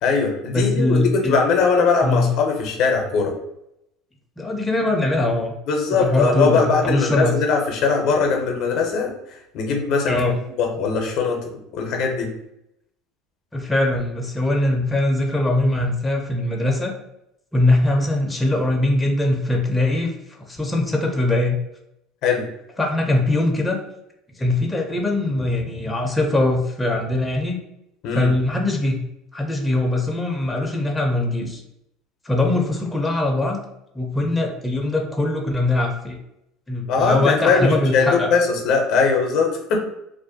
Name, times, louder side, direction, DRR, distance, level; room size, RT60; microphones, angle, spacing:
voice 1, 0.0-3.4 5.7-9.1 9.5-10.2 10.6-11.4 11.7-12.3 22.2-22.4 28.0-28.3 36.9-39.8, left 5 dB, 65° left, 2 dB, 0.6 m, -20 dB
voice 2, 0.5-1.4 2.0-2.3 4.4-5.5 5.9-7.3 10.1-10.4 13.5-16.9 17.5-20.1 20.5-21.6 22.8-23.8 24.4-27.6 28.1-29.0 29.3-31.6 32.2-33.6 33.9-36.2 36.7-38.3, left 2 dB, 10° left, 1 dB, 0.5 m, -21 dB
2.4 x 2.1 x 2.6 m, 0.82 s
supercardioid pair, 100°, 0 cm